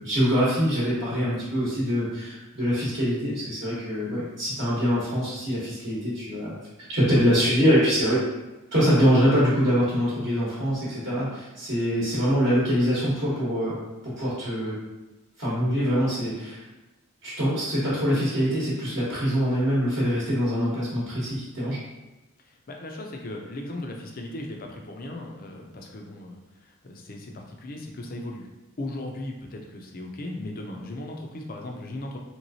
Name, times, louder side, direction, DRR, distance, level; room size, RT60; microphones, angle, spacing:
voice 1, 0.0-6.6 6.9-8.2 8.7-13.8 14.0-14.8 15.4-16.6 17.2-21.8, equal, 50° right, -8 dB, 1.0 m, -24 dB
voice 2, 22.4-28.5 28.8-32.2, left 1 dB, 40° left, 1 dB, 0.4 m, -37 dB
3.2 x 3.0 x 2.7 m, 1.0 s
head